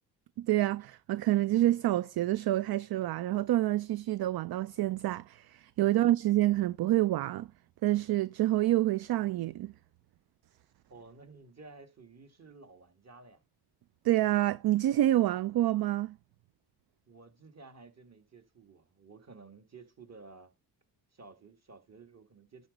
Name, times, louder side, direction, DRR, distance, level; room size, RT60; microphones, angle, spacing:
voice 1, 0.4-7.5 7.8-9.7 14.0-16.2, right 14 dB, 55° right, 0.5 m, -27 dB
voice 2, 10.9-13.4 17.1-20.5 21.1-22.7, right 4 dB, 35° right, 1.9 m, -53 dB
11.5 x 4.1 x 5.3 m
supercardioid pair, 55°, 44 cm